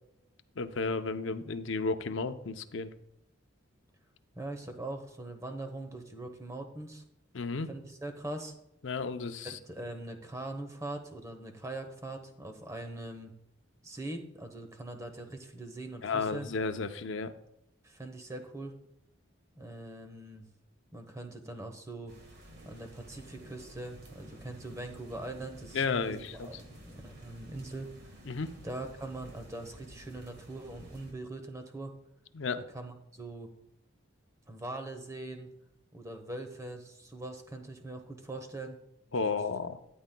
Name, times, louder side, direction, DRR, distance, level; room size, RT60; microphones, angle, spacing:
voice 1, 0.6-2.9 7.3-7.7 8.8-9.6 16.0-17.3 25.7-26.5 28.3-28.5 32.3-32.6 39.1-39.8, left 4 dB, 65° left, 9 dB, 0.6 m, -33 dB
voice 2, 4.3-7.0 7.7-8.5 9.4-13.3 13.8-16.5 17.8-18.7 19.6-20.4 20.9-22.1 22.6-28.1 28.6-31.9 32.7-33.5 34.4-35.5 35.9-38.8, right 2 dB, 15° right, 5 dB, 1.0 m, -42 dB
sound 1, 22.1-31.1, right 1 dB, 50° right, 1.6 m, -52 dB
12.5 x 9.4 x 2.2 m, 0.79 s
head